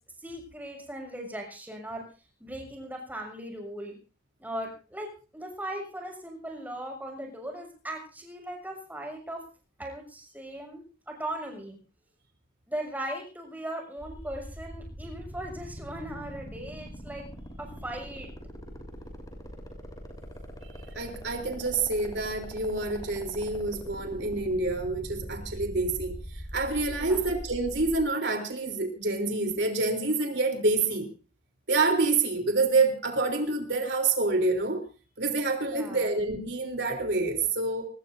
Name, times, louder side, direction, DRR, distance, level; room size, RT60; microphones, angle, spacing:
voice 1, 0.2-2.0 2.4-3.9 4.4-5.1 5.3-9.4 9.8-11.8 12.7-17.2 17.6-18.3 27.0-27.2 35.6-36.1, right 1 dB, 10° right, 1 dB, 6.4 m, -38 dB
sound 1, 14.0-28.0, equal, 20° left, 5.9 m, -42 dB
voice 2, 21.0-26.1 26.5-31.1 31.7-34.8 35.2-37.9, right 3 dB, 65° right, 3 dB, 3.6 m, -27 dB
25.0 x 20.5 x 2.7 m, 0.36 s
head